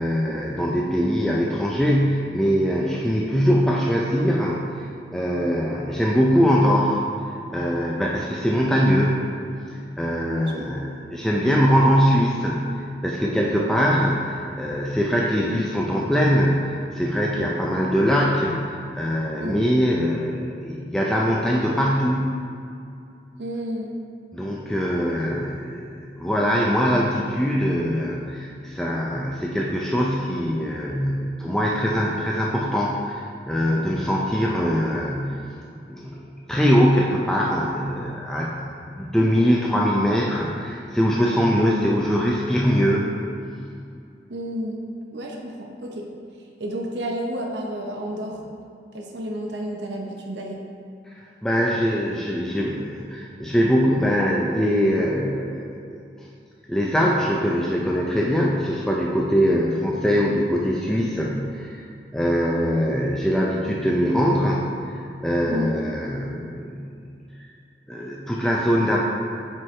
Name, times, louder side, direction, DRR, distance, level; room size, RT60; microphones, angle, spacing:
voice 1, 0.0-4.9 5.1-7.0 7.5-9.2 9.7-12.6 13.0-18.6 18.9-22.4 24.3-35.4 35.9-38.5 38.8-43.1 51.4-56.0 56.7-61.8 62.1-65.0 65.2-66.9 67.9-69.0, equal, 5° left, -4 dB, 0.4 m, -22 dB
voice 2, 10.3-10.7 19.4-19.6 23.4-23.9 44.3-44.8 45.1-46.0 46.6-48.4 48.9-50.6 65.5-65.7, equal, 85° right, 0 dB, 0.7 m, -31 dB
7.4 x 4.6 x 3.2 m, 2.5 s
head